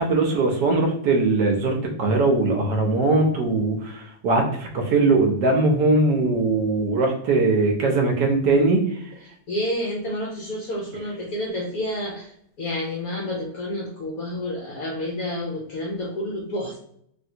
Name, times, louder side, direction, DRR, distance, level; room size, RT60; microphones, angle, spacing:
voice 1, 0.0-8.9, right 3 dB, 70° right, 2 dB, 1.1 m, -20 dB
voice 2, 9.5-16.8, left 1 dB, 70° left, -1 dB, 0.9 m, -29 dB
3.4 x 2.5 x 2.7 m, 0.70 s
omnidirectional pair, 2.1 m